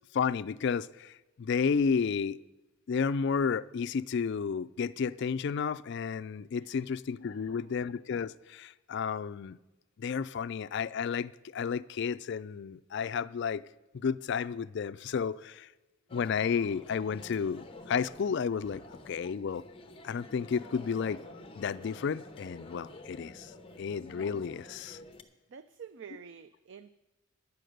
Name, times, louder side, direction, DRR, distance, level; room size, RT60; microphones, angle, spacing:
voice 1, 0.1-2.4 2.9-9.6 10.0-13.6 13.9-15.7 16.1-19.6 20.0-21.2 21.6-23.5 23.8-25.0, left 6 dB, 55° left, 0.3 m, -32 dB
voice 2, 7.2-7.8 25.5-26.9, right 6 dB, 55° right, 0.4 m, -49 dB
sound 1, 16.1-25.2, left 2 dB, 25° left, 0.8 m, -49 dB
11.0 x 9.2 x 6.5 m
head